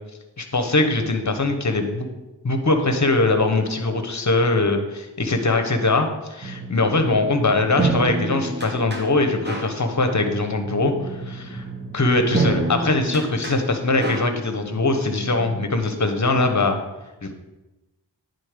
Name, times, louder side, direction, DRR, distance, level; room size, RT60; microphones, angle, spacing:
voice 1, 0.4-2.1 2.4-11.6 11.9-16.8 17.2-17.3, left 2 dB, 40° left, 6 dB, 1.2 m, -21 dB
sound 1, 6.4-15.7, right 3 dB, 25° right, 1.4 m, -29 dB
9.7 x 4.2 x 5.1 m, 1.0 s
cardioid pair, 45°, 45 cm